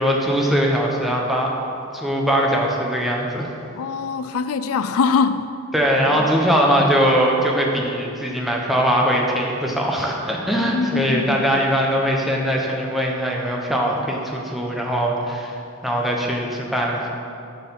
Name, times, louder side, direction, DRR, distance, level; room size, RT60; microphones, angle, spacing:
voice 1, 0.0-1.5 1.9-3.5 5.7-17.1, equal, ahead, -2 dB, 1.0 m, -21 dB
voice 2, 3.8-5.5 6.1-6.3 10.6-11.6, left 5 dB, 80° left, 11 dB, 0.4 m, -23 dB
10.5 x 4.1 x 7.2 m, 2.7 s
head